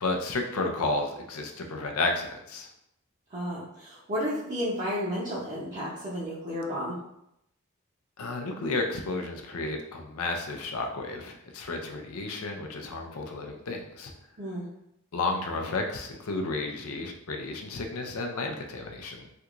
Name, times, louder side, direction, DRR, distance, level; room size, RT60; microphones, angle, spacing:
voice 1, 0.0-2.7 8.2-14.1 15.1-19.2, left 3 dB, 85° left, 3 dB, 0.5 m, -32 dB
voice 2, 3.3-7.0 14.4-14.6, equal, 35° right, -10 dB, 0.7 m, -32 dB
3.4 x 2.9 x 2.4 m, 0.80 s
head